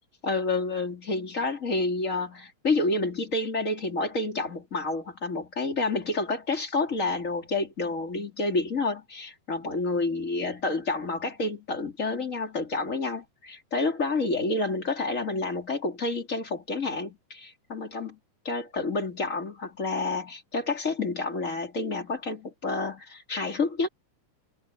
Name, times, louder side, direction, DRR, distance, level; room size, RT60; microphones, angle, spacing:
voice 1, 0.2-18.2 18.5-23.9, left 3 dB, 25° left, 3.4 m, -29 dB
omnidirectional pair, 3.6 m